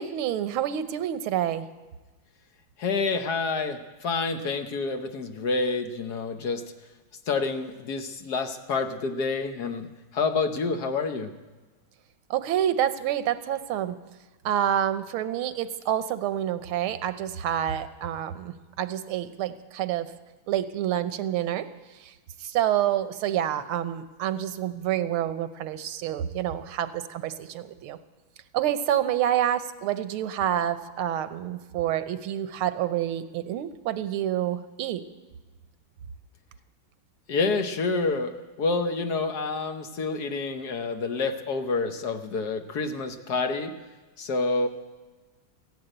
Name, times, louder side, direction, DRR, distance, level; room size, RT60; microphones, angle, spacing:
voice 1, 0.0-1.7 12.3-14.0 14.4-20.1 20.5-21.6 22.0-22.1 22.4-28.0 28.5-35.0, right 11 dB, 90° right, 11 dB, 1.7 m, -28 dB
voice 2, 2.8-6.6 7.3-11.3 37.3-43.7 44.2-44.7, left 4 dB, 60° left, 7 dB, 1.3 m, -28 dB
15.0 x 10.5 x 9.0 m, 1.2 s
omnidirectional pair, 2.3 m